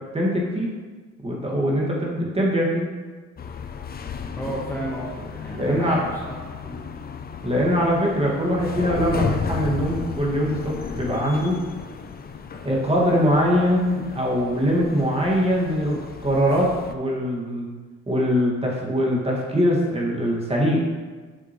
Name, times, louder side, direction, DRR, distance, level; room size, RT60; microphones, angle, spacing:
voice 1, 0.1-0.7 1.2-2.9 5.5-6.0 7.4-11.6 12.6-17.7 18.1-20.8, equal, 20° right, -4 dB, 1.9 m, -22 dB
sound 1, 3.4-16.9, left 6 dB, 30° left, 0.5 m, -34 dB
voice 2, 4.3-6.3 6.6-6.8, right 1 dB, 10° left, -5 dB, 1.2 m, -32 dB
7.8 x 5.8 x 3.1 m, 1.4 s
cardioid pair, 90°, 30 cm